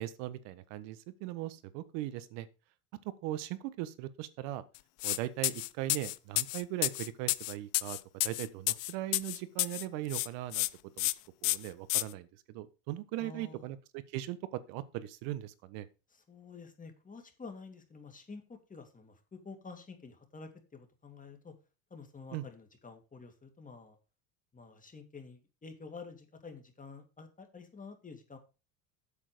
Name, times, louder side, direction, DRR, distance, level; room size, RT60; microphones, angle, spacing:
voice 1, 0.0-2.5 3.2-4.6 5.0-8.0 8.2-10.7 11.0-11.1 11.4-15.9 22.3-22.4, right 14 dB, 75° right, 15 dB, 1.4 m, -39 dB
sound 1, 5.0-5.2 5.4-9.8 10.1-10.7 11.0-11.1 11.4-12.0, left 21 dB, 70° left, 0.7 m, -30 dB
voice 2, 13.2-13.7 16.1-21.6 21.9-24.0 24.5-28.4, left 4 dB, 20° left, 6 dB, 2.5 m, -49 dB
8.6 x 7.3 x 5.0 m, 0.31 s
supercardioid pair, 115°, 42 cm